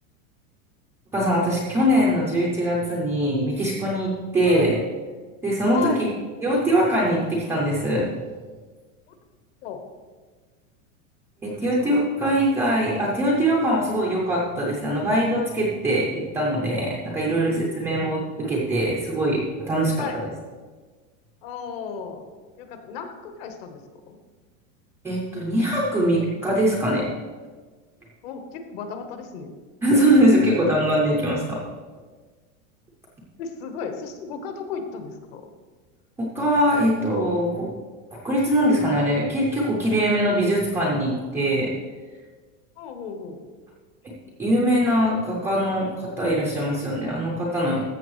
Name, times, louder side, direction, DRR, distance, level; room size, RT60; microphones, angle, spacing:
voice 1, 1.1-4.8 5.4-6.1 6.4-8.1 11.4-20.1 25.0-27.1 29.8-31.6 36.2-37.7 38.1-41.7 44.0-44.1 44.4-47.8, right 1 dB, 5° right, -5 dB, 0.4 m, -22 dB
voice 2, 5.7-6.0 9.6-9.8 11.5-11.7 17.2-17.8 20.0-20.2 21.4-22.2 22.6-23.8 24.1-24.2 28.2-29.5 33.4-35.5 42.8-43.4, left 6 dB, 45° left, 6 dB, 1.1 m, -35 dB
14.0 x 6.9 x 3.1 m, 1.4 s
supercardioid pair, 170°, 41 cm